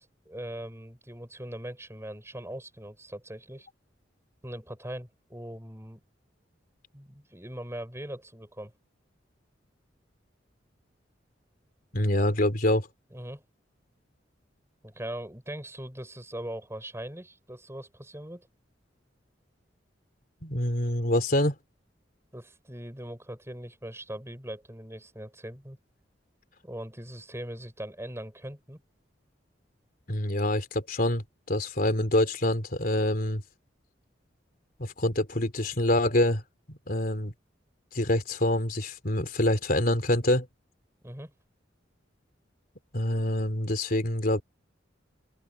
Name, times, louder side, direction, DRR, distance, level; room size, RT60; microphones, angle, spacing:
voice 1, 0.0-3.7 4.4-6.0 6.9-8.7 13.1-13.4 14.8-18.5 22.3-25.8 26.6-28.8 41.0-41.3, right 1 dB, 15° right, 6.1 m, -40 dB
voice 2, 11.9-12.9 20.4-21.6 30.1-33.4 34.8-36.4 36.7-37.3 37.9-40.5 42.9-44.4, left 1 dB, 50° left, 3.7 m, -26 dB
open air
head